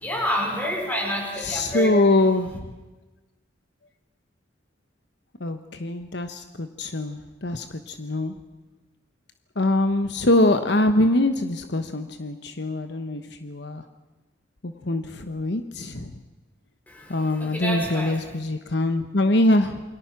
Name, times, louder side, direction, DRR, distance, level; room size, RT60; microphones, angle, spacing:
voice 1, 0.0-2.0 17.0-17.1 17.4-18.2, equal, 10° left, 1 dB, 5.0 m, -28 dB
voice 2, 1.4-2.7 5.4-8.3 9.6-13.8 14.6-16.1 17.1-19.8, left 1 dB, 60° left, 8 dB, 1.1 m, -23 dB
28.5 x 23.0 x 6.0 m, 1.2 s
head